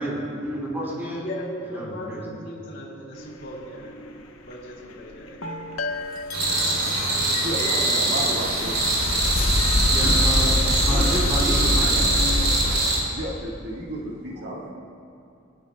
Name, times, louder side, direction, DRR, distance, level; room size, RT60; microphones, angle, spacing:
voice 1, 0.0-1.2 1.7-2.3 9.9-11.9, right 1 dB, 10° right, -5 dB, 2.8 m, -29 dB
voice 2, 1.2-3.9 4.5-5.6, equal, 60° left, -2 dB, 2.6 m, -37 dB
sound 1, 3.1-12.6, left 3 dB, 90° left, 0.9 m, -37 dB
sound 2, 6.3-13.0, right 2 dB, 85° right, 3.1 m, -23 dB
voice 3, 7.4-8.8 9.7-10.1 10.9-11.0 13.1-14.7, right 1 dB, 55° right, -3 dB, 1.7 m, -32 dB
sound 3, 8.2-12.8, left 2 dB, 30° left, 0.5 m, -24 dB
27.0 x 9.8 x 2.3 m, 2.5 s
head